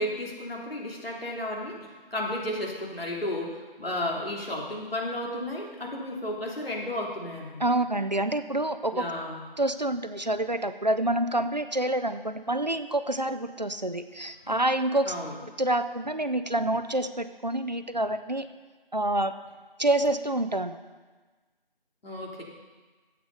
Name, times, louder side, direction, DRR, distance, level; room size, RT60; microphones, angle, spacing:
voice 1, 0.0-7.6 8.9-9.4 14.4-14.6 15.1-15.3 22.0-22.4, left 1 dB, 80° left, -2 dB, 3.2 m, -33 dB
voice 2, 7.6-9.1 9.6-15.1 15.6-18.5 18.9-19.3 19.8-20.8, right 1 dB, 50° right, 10 dB, 0.6 m, -27 dB
13.0 x 8.0 x 5.4 m, 1.3 s
figure-of-eight pair, 180°, 29 cm